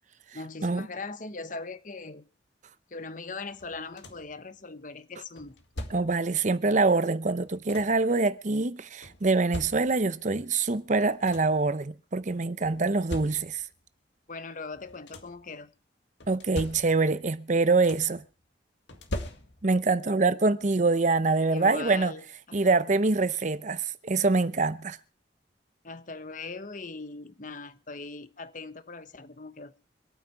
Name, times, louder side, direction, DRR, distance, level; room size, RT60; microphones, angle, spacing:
voice 1, 0.3-2.3 2.9-5.6 12.7-12.8 14.3-15.7 21.5-22.2 22.6-22.7 25.8-29.7, left 3 dB, 45° left, 1.1 m, -40 dB
sound 1, 3.6-4.4 5.4-6.3 7.2-8.1 9.0-10.2 10.8-10.9 11.1-11.7 12.6-13.8 14.7-15.5 16.2-17.2 17.5-18.3 18.9-19.9 21.2-21.3 21.8-22.0, equal, 80° left, 2.0 m, -41 dB
voice 2, 5.9-13.6 16.3-18.2 19.6-22.1 22.5-25.0, right 3 dB, 40° right, 0.7 m, -25 dB
25.0 x 9.2 x 4.6 m
head